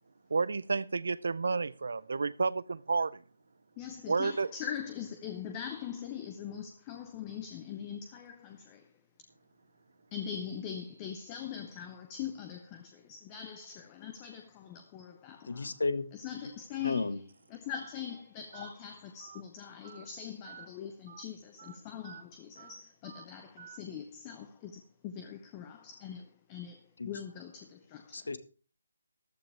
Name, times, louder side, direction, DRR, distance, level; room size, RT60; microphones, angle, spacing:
voice 1, 0.3-3.2 4.1-4.5, right 4 dB, 70° right, 0.5 m, -30 dB
voice 2, 3.8-8.9 10.1-15.7 16.1-17.1 17.5-28.2, left 8 dB, 15° left, 0.8 m, -42 dB
voice 3, 15.5-16.1 16.8-17.2 27.0-27.1 28.1-28.4, left 3 dB, 80° left, 1.6 m, -32 dB
Telephone, 16.8-17.0 17.7-17.9 18.5-18.7 19.2-19.4 19.8-20.1 20.4-20.7 21.1-21.2 21.6-21.8 22.0-22.2 22.6-22.7 23.0-23.3 23.6-23.8, right 8 dB, 40° right, 1.8 m, -50 dB
14.5 x 12.0 x 3.4 m
hypercardioid pair, 170°, 0 cm